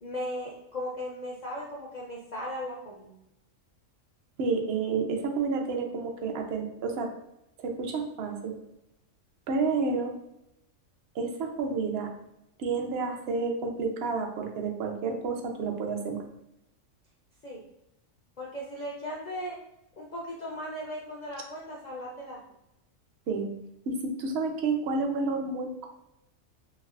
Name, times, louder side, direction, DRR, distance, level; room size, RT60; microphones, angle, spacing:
voice 1, 0.0-3.1 17.4-17.6 18.4-19.6 20.0-22.4, equal, 65° left, -4 dB, 0.4 m, -37 dB
voice 2, 4.4-7.1 7.6-8.6 9.5-10.1 11.1-12.1 12.6-16.2 23.3-23.5 23.9-25.9, right 4 dB, 65° right, 3 dB, 0.7 m, -30 dB
3.2 x 2.8 x 2.3 m, 0.86 s
omnidirectional pair, 1.4 m